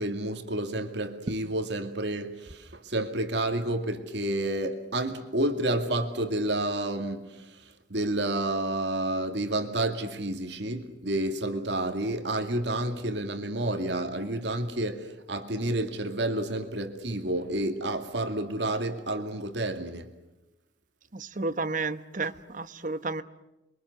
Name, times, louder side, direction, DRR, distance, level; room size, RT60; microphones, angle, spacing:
voice 1, 0.0-7.6 7.9-20.1 22.2-22.3, right 1 dB, 65° right, 2.3 m, -30 dB
voice 2, 21.1-23.2, right 3 dB, 40° right, 1.1 m, -32 dB
29.0 x 23.5 x 8.0 m
head